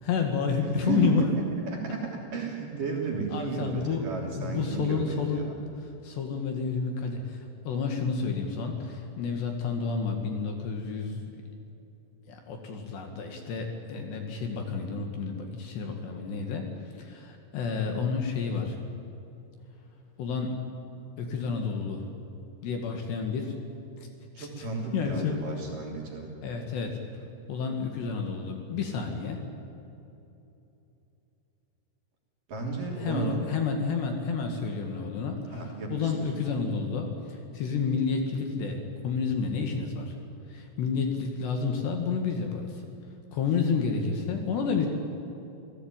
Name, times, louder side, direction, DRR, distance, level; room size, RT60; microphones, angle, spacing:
voice 1, 0.0-1.2 1.9-2.0 3.3-4.1 4.4-5.5 5.8-11.2 12.3-16.7 17.0-18.8 20.2-20.6 21.2-22.1 22.6-23.6 24.4-24.7 24.9-25.4 26.4-27.0 27.5-29.4 33.0-40.2 40.5-42.8 43.3-44.9, left 5 dB, 60° left, 3 dB, 3.7 m, -30 dB
voice 2, 0.6-5.5 24.3-26.3 32.5-33.4 35.5-36.1, right 5 dB, 45° right, -1 dB, 4.3 m, -33 dB
28.0 x 16.5 x 9.1 m, 2.9 s
omnidirectional pair, 6.0 m